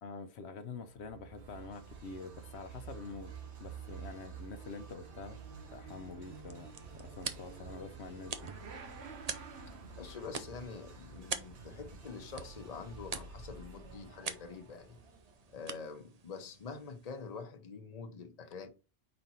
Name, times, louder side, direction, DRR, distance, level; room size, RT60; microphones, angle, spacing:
voice 1, 0.0-3.3 3.6-5.4 5.7-8.3, left 4 dB, 80° left, 1.0 m, -46 dB
Motorcycle / Accelerating revving vroom, 0.9-14.6, right 5 dB, 75° right, 1.2 m, -51 dB
sound 1, 1.3-16.0, right 5 dB, 90° right, 1.5 m, -55 dB
sound 2, 6.2-17.4, right 5 dB, 40° right, 0.7 m, -46 dB
voice 2, 10.0-15.0 15.5-18.7, left 5 dB, 40° left, 0.9 m, -46 dB
5.1 x 4.4 x 4.2 m
omnidirectional pair, 1.1 m